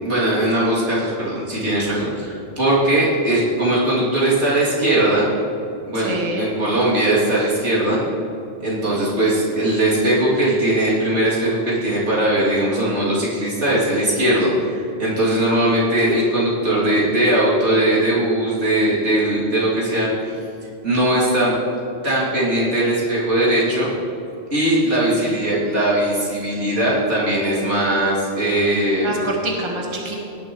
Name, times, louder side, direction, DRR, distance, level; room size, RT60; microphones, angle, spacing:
voice 1, 0.0-5.3 5.9-8.0 8.6-20.4 20.8-21.5 22.0-23.9 24.5-29.1, right 1 dB, 80° right, -7 dB, 3.3 m, -19 dB
voice 2, 5.9-6.5 25.1-25.8 29.0-30.1, right 2 dB, 25° right, -2 dB, 1.5 m, -27 dB
17.5 x 10.5 x 3.1 m, 2.6 s
omnidirectional pair, 1.2 m